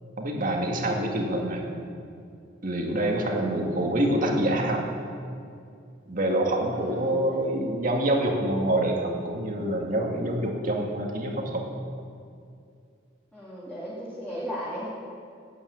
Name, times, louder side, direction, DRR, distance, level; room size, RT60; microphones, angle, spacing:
voice 1, 0.2-1.6 2.6-4.8 6.1-11.6, right 1 dB, 45° right, 1 dB, 1.9 m, -26 dB
voice 2, 3.0-3.5 6.7-7.2 13.3-14.9, equal, 5° left, -9 dB, 2.3 m, -36 dB
11.5 x 8.8 x 8.4 m, 2.4 s
head